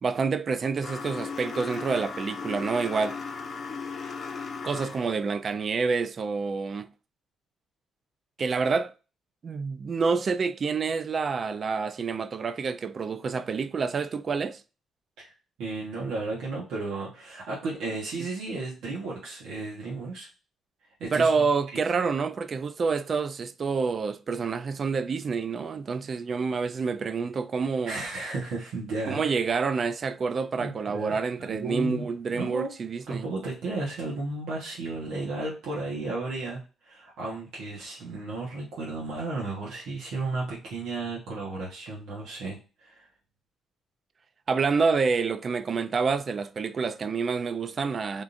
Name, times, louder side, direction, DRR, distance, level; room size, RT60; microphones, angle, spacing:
voice 1, 0.0-3.2 4.6-6.9 8.4-8.9 9.4-14.6 21.1-28.0 29.1-33.3 44.5-48.2, right 5 dB, 45° right, 0.3 m, -28 dB
sound 1, 0.8-5.2, left 5 dB, 45° left, 0.7 m, -36 dB
voice 2, 15.6-20.3 21.0-21.3 21.7-21.8 27.8-29.2 30.6-32.1 32.3-32.7 33.1-43.1, right 3 dB, 85° right, 1.1 m, -34 dB
3.6 x 2.4 x 2.5 m
cardioid pair, 90°, 0 cm